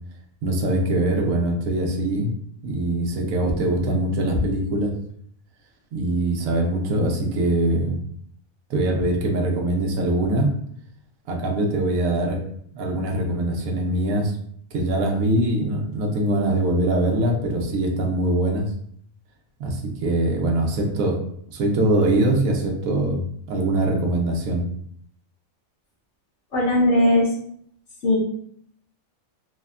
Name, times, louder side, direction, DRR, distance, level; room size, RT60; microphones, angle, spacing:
voice 1, 0.4-2.3 2.6-4.9 5.9-8.0 8.7-10.5 11.3-12.4 12.7-14.3 14.7-18.7 19.6-21.2 21.5-23.2 23.5-24.6, right 1 dB, 85° right, 2 dB, 1.0 m, -22 dB
voice 2, 26.5-27.3 28.0-28.2, left 1 dB, 65° left, -2 dB, 1.0 m, -18 dB
3.3 x 2.1 x 2.3 m, 0.66 s
omnidirectional pair, 1.4 m